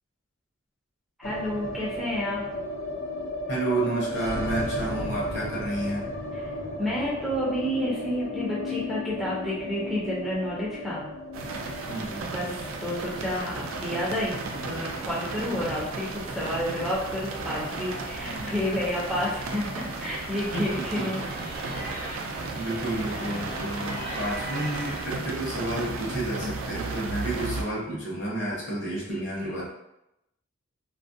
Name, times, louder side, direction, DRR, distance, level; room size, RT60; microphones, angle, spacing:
sound 1, 1.2-17.3 17.6-17.7 18.0-18.7, left 1 dB, 90° left, 0.6 m, -35 dB
voice 1, 1.2-2.4 6.4-6.5 6.8-11.0 12.3-21.2 29.1-29.6, left 1 dB, ahead, -7 dB, 0.4 m, -30 dB
voice 2, 3.5-6.0 11.9-12.6 15.4-15.6 18.3-18.6 20.5-21.0 21.4-21.5 22.5-29.6, right 1 dB, 60° left, -5 dB, 0.9 m, -31 dB
sound 2, 11.3-27.6, right 3 dB, 80° right, 0.4 m, -35 dB
sound 3, 14.5-25.1, right 1 dB, 45° right, 0.7 m, -40 dB
2.4 x 2.0 x 2.6 m, 0.85 s
head